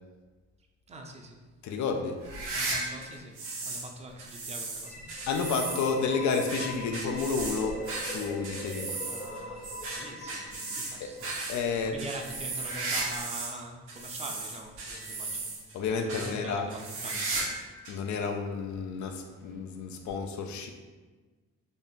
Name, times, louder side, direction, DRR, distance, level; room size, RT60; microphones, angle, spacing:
voice 1, 0.9-1.4 2.5-5.1 9.0-11.3 11.7-17.3, right 2 dB, 20° right, 3 dB, 0.5 m, -44 dB
voice 2, 1.6-2.2 3.7-3.8 5.3-9.0 11.0-11.1 11.5-11.9 15.7-16.7 17.9-20.7, left 5 dB, 70° left, 5 dB, 0.6 m, -31 dB
sound 1, 2.2-3.9 4.2-13.6 13.9-15.7 16.1-16.3 16.7-17.6 17.8-17.9 18.7-18.8 20.1-20.2, right 3 dB, 90° right, 1.1 m, -36 dB
sound 2, 4.8-11.6, left 1 dB, 25° left, 0.7 m, -42 dB
4.1 x 2.4 x 3.6 m, 1.3 s
cardioid pair, 90°, 30 cm